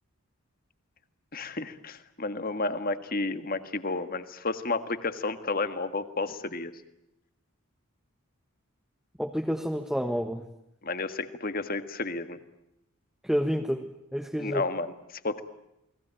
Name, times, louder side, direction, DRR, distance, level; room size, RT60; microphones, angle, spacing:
voice 1, 1.3-6.7 10.8-12.4 14.4-15.4, left 3 dB, 40° left, 10 dB, 1.7 m, -32 dB
voice 2, 9.2-10.4 13.2-14.6, equal, ahead, 4 dB, 1.2 m, -29 dB
29.5 x 20.5 x 9.0 m, 0.84 s
head